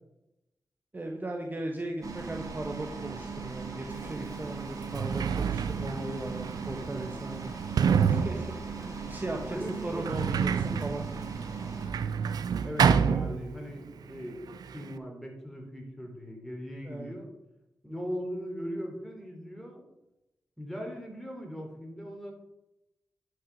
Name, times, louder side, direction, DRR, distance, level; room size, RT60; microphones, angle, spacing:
voice 1, 0.9-7.5 8.1-11.1 16.8-17.1, right 1 dB, 30° right, 2 dB, 1.3 m, -37 dB
sound 1, 2.0-11.9, right 4 dB, 60° right, 2.2 m, -39 dB
Sliding door, 4.0-4.1 4.7-13.9 14.1-15.0, right 7 dB, 85° right, 0.5 m, -29 dB
voice 2, 9.5-10.1 12.6-14.4 14.7-17.3 17.8-19.8 20.6-22.3, equal, ahead, 1 dB, 3.5 m, -39 dB
11.0 x 6.0 x 5.3 m, 0.91 s
cardioid pair, 55°, 7 cm